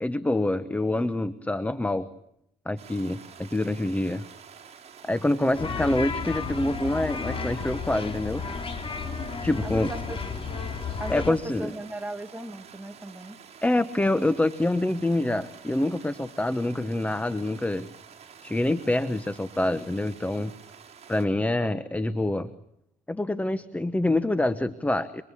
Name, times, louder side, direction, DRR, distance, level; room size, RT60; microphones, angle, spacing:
voice 1, 0.0-2.1 2.7-4.2 5.0-8.4 9.4-9.9 11.1-11.7 13.6-17.9 18.4-20.5 21.1-22.5 23.1-25.2, left 1 dB, 10° left, 13 dB, 1.0 m, -26 dB
sound 1, 2.8-21.3, right 7 dB, 40° right, 6.1 m, -49 dB
sound 2, 5.5-11.3, left 5 dB, 35° left, 4.3 m, -33 dB
voice 2, 9.6-10.2 11.0-13.4, right 2 dB, 10° right, 7 dB, 1.9 m, -37 dB
27.5 x 25.0 x 8.5 m, 0.75 s
cardioid pair, 110°, 17 cm